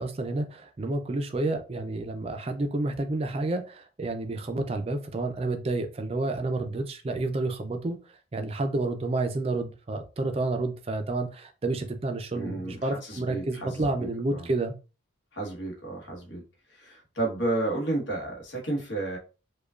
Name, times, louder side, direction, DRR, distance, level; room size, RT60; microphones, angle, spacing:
voice 1, 0.0-8.0 8.3-14.7, right 2 dB, 30° right, 7 dB, 0.4 m, -30 dB
voice 2, 12.3-14.5 15.3-16.4 16.7-19.2, right 2 dB, 65° left, 0 dB, 1.2 m, -32 dB
4.9 x 2.3 x 2.4 m, 0.33 s
head